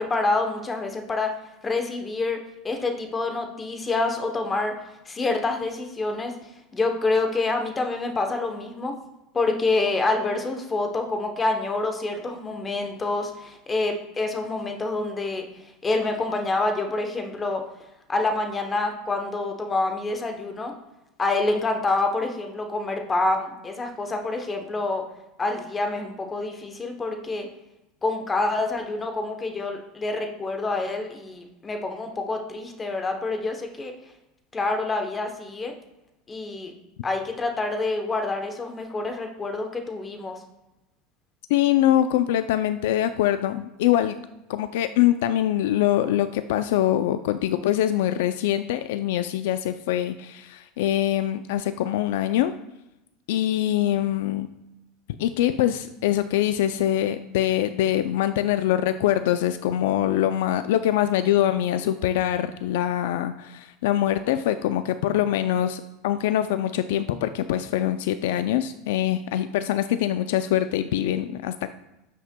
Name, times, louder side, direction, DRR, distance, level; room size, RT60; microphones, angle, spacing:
voice 1, 0.0-1.4 1.6-6.3 6.7-8.9 9.3-15.4 15.8-17.6 18.1-20.7 21.2-25.0 25.4-27.5 28.0-33.9 34.5-35.7 36.3-36.7 37.0-40.4, left 3 dB, 15° left, 4 dB, 0.8 m, -27 dB
voice 2, 41.5-44.2 44.5-52.5 53.3-54.5 55.2-71.7, left 12 dB, 80° left, 10 dB, 0.3 m, -23 dB
9.3 x 5.5 x 2.2 m, 0.94 s
supercardioid pair, 140°, 0 cm